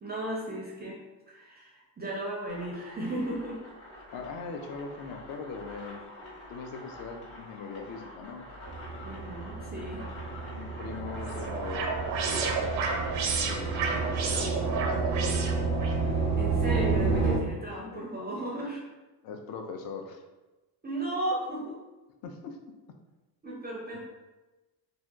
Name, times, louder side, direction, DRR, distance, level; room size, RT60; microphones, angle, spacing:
voice 1, 0.0-1.0 1.3-3.6 9.0-10.1 16.0-18.8 20.8-21.8 23.4-24.0, right 1 dB, 20° right, -3 dB, 0.4 m, -35 dB
sound 1, 2.5-14.5, left 1 dB, 70° left, 1.4 m, -46 dB
voice 2, 4.1-6.0 6.5-8.5 10.5-12.8 13.4-15.4 17.8-18.1 19.2-20.2 22.2-22.6 23.9-24.0, left 4 dB, 50° left, 5 dB, 0.4 m, -41 dB
sound 2, 8.7-17.4, right 4 dB, 35° left, 1.0 m, -30 dB
sound 3, 10.8-16.0, right 4 dB, 80° right, 0.6 m, -32 dB
2.7 x 2.1 x 2.3 m, 1.1 s
cardioid pair, 95°, 46 cm